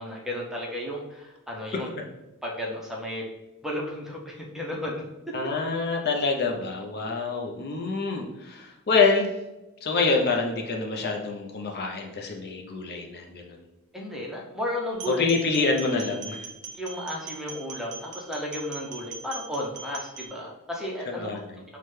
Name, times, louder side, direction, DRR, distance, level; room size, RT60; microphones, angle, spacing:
voice 1, 0.0-1.9 2.4-3.3 3.6-5.0 13.9-15.3 16.7-21.3, left 1 dB, ahead, -2 dB, 0.5 m, -33 dB
voice 2, 5.3-9.3 9.8-13.6 15.2-16.5 21.1-21.6, left 4 dB, 45° left, 2 dB, 0.5 m, -26 dB
sound 1, 14.9-20.3, right 5 dB, 85° right, 0.6 m, -40 dB
5.7 x 2.2 x 3.2 m, 1.0 s
head